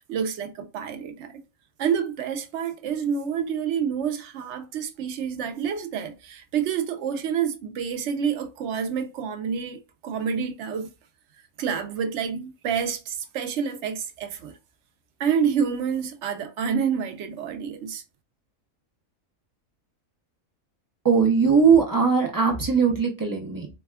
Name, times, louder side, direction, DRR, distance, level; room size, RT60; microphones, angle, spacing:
voice 1, 0.1-1.4 1.8-10.9 11.6-14.5 15.2-18.0, right 7 dB, 70° right, 0.8 m, -28 dB
voice 2, 21.0-23.7, right 5 dB, 25° right, 0.4 m, -20 dB
4.0 x 2.3 x 2.2 m
omnidirectional pair, 1.4 m